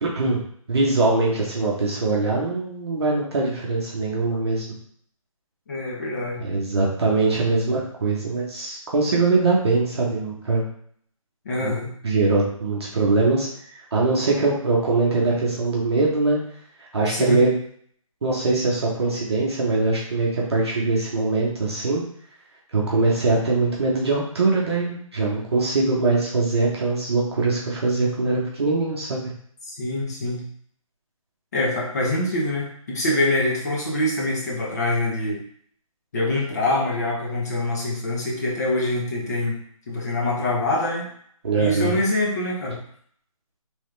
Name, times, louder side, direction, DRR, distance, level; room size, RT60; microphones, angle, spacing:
voice 1, 0.0-0.4 0.7-4.6 6.4-10.6 11.6-11.7 12.0-13.5 13.9-16.4 16.9-17.5 18.2-22.0 22.7-29.3 41.4-42.0, right 3 dB, 45° right, -4 dB, 1.0 m, -22 dB
voice 2, 5.7-6.5 11.4-11.9 17.1-17.4 29.8-30.4 31.5-35.4 36.1-39.6 39.9-41.1 41.6-42.8, left 1 dB, 30° left, -3 dB, 1.0 m, -24 dB
3.7 x 3.2 x 3.2 m, 0.62 s
hypercardioid pair, 170°, 18 cm